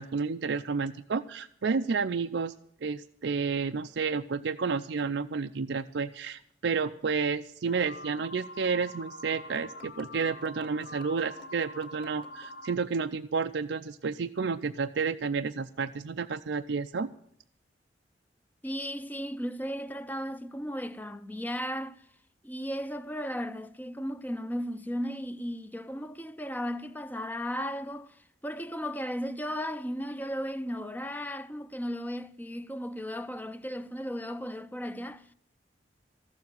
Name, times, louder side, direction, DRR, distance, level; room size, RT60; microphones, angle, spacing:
voice 1, 0.0-2.5 2.8-17.1, right 5 dB, 80° right, 0.5 m, -31 dB
sound 1, 5.7-6.2 6.5-6.6 8.0-8.2 8.8-8.9 9.2-12.6, left 2 dB, 30° left, 2.0 m, -55 dB
sound 2, 7.7-12.8, left 2 dB, 65° left, 0.8 m, -45 dB
voice 2, 18.6-22.0 22.4-35.3, equal, 10° left, 0.6 m, -35 dB
14.0 x 7.3 x 9.2 m
head